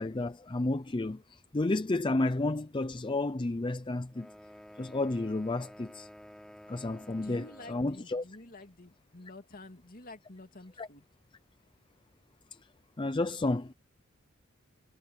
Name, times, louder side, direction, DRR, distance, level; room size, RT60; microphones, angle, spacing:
voice 1, 0.0-4.3 4.8-6.1 6.7-8.2 10.8-10.9 13.0-13.7, left 2 dB, 25° left, 0.5 m, -31 dB
sound 1, 4.1-8.0, equal, 5° left, 6.0 m, -51 dB
voice 2, 7.1-11.1, left 2 dB, 45° left, 2.8 m, -49 dB
head